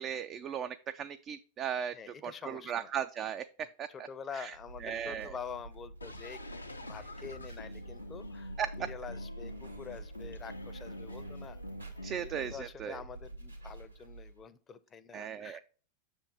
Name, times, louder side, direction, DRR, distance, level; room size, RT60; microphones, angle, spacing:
voice 1, 0.0-1.9 2.2-3.5 3.8-4.1 4.4-4.5 4.8-5.3 8.6-8.7 12.0-13.0 15.1-15.6, right 9 dB, 30° right, 10 dB, 0.3 m, -37 dB
voice 2, 1.9-2.9 3.9-6.4 6.7-11.6 12.2-15.6, left 6 dB, 20° left, 13 dB, 0.6 m, -46 dB
sound 1, 4.5-14.4, right 2 dB, 90° right, 1.9 m, -47 dB
sound 2, 6.0-12.5, left 1 dB, 85° left, 0.6 m, -46 dB
6.8 x 3.6 x 5.2 m, 0.39 s
figure-of-eight pair, 90°, 0 cm